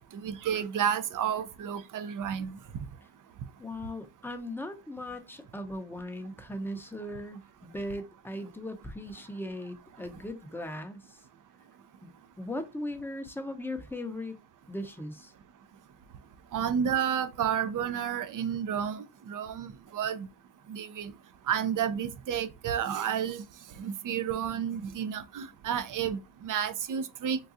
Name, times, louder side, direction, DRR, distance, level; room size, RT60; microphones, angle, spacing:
voice 1, 0.2-2.6 16.5-20.3 20.7-21.1 21.5-23.4 23.8-27.4, right 8 dB, 45° right, 0.6 m, -31 dB
voice 2, 3.6-11.2 12.0-12.1 12.4-14.4 14.7-15.3, left 1 dB, 5° left, 0.7 m, -38 dB
3.9 x 2.3 x 2.6 m
supercardioid pair, 65°, 46 cm